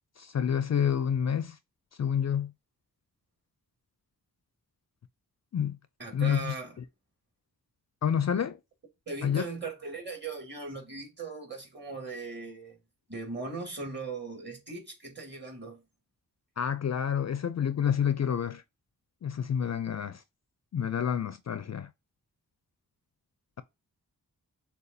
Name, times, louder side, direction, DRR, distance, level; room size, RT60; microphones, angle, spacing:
voice 1, 0.2-1.6 2.0-2.5 5.5-5.8 6.1-6.5 8.0-8.6 9.2-9.4 16.6-18.6 19.2-20.2 20.7-21.9, left 8 dB, 50° left, 0.4 m, -28 dB
voice 2, 6.0-6.8 9.1-12.8 13.1-15.8, right 3 dB, 30° right, 2.4 m, -39 dB
6.7 x 2.3 x 2.6 m
wide cardioid pair, 100°, 35 cm